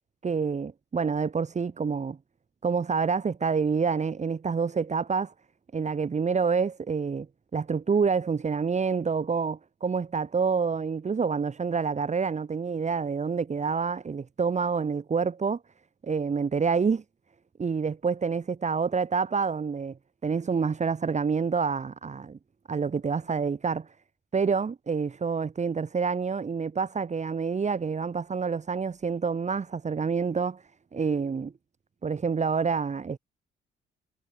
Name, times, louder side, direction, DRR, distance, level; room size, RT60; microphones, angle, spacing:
voice 1, 0.2-2.2 2.6-5.3 5.7-7.3 7.5-15.6 16.0-17.0 17.6-20.0 20.2-22.4 22.7-23.9 24.3-30.6 30.9-31.5 32.0-33.2, right 5 dB, 35° right, 2.7 m, -27 dB
cardioid pair, 90°, 20 cm